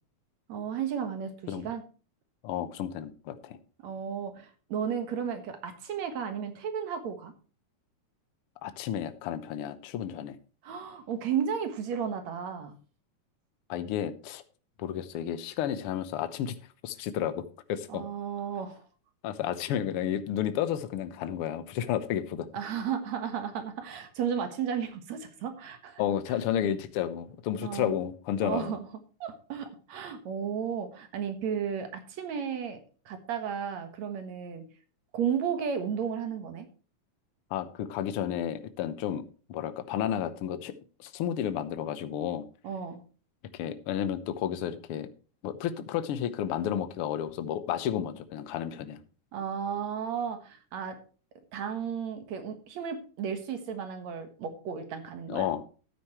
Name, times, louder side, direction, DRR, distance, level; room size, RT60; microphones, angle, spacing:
voice 1, 0.5-1.8 3.8-7.3 10.6-12.7 17.9-18.8 22.5-26.0 27.6-27.9 28.4-28.9 29.2-32.8 33.1-34.7 35.1-36.7 42.6-43.0 49.3-51.0 51.5-55.5, right 7 dB, 70° right, 8 dB, 2.7 m, -33 dB
voice 2, 2.4-3.6 8.6-10.4 13.7-14.4 14.8-16.6 16.8-17.4 17.7-18.0 19.2-22.5 26.0-28.7 37.5-39.2 39.5-40.7 41.0-42.5 43.5-45.1 45.4-49.0 55.3-55.6, left 10 dB, 65° left, 11 dB, 1.6 m, -32 dB
13.5 x 9.3 x 3.1 m, 0.38 s
omnidirectional pair, 3.4 m